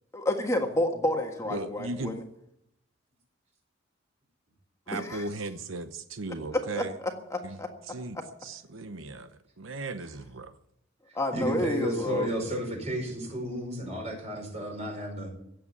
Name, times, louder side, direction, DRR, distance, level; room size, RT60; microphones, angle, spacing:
voice 1, 0.1-2.2 4.9-5.2 6.5-7.7 11.2-12.3, left 1 dB, 15° left, 3 dB, 1.6 m, -29 dB
voice 2, 1.5-2.2 4.9-7.0 7.4-7.6 7.9-9.3 9.6-10.5, right 2 dB, 90° right, 9 dB, 1.0 m, -37 dB
voice 3, 11.3-15.3, equal, 35° right, 2 dB, 5.2 m, -32 dB
17.0 x 7.9 x 9.7 m, 0.78 s
head